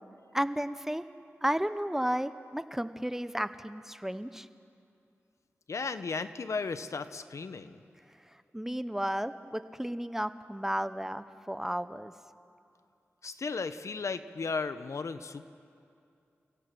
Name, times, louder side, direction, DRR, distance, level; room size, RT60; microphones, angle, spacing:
voice 1, 0.3-1.0 1.4-4.5 8.5-12.1, equal, 10° right, 12 dB, 0.8 m, -33 dB
voice 2, 5.7-7.8 13.2-15.5, left 4 dB, 75° left, 11 dB, 0.8 m, -35 dB
29.5 x 16.5 x 6.2 m, 2.5 s
cardioid pair, 50°, 5 cm